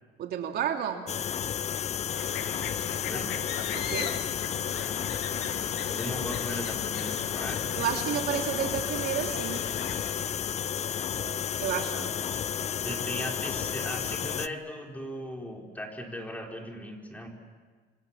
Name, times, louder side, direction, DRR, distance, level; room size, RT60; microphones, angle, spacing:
voice 1, 0.2-1.1 3.7-4.2 7.8-9.6 11.6-11.9, right 9 dB, 70° right, 4 dB, 3.0 m, -31 dB
sound 1, 1.1-14.5, left 8 dB, 40° left, 0.8 m, -32 dB
sound 2, 2.1-10.1, left 9 dB, 85° left, 2.3 m, -38 dB
voice 2, 3.0-3.4 5.9-7.7 11.8-12.1 12.8-17.3, equal, 10° left, 1 dB, 5.0 m, -38 dB
sound 3, 4.5-8.6 9.7-15.5, right 3 dB, 40° right, 7.4 m, -51 dB
27.5 x 25.5 x 7.5 m, 1.5 s
cardioid pair, 110°, 17 cm